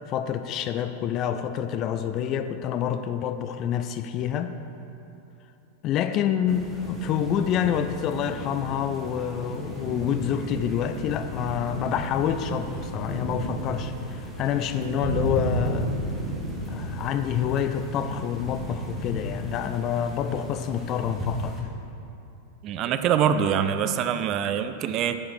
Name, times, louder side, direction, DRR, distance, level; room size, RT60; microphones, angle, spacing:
voice 1, 0.1-4.5 5.8-15.9 16.7-21.6, left 9 dB, 35° left, 10 dB, 0.5 m, -27 dB
sound 1, 6.5-21.6, equal, 5° right, 1.6 m, -33 dB
voice 2, 22.6-25.2, right 8 dB, 35° right, 10 dB, 0.4 m, -24 dB
10.0 x 5.7 x 5.8 m, 2.8 s
figure-of-eight pair, 90°, 0 cm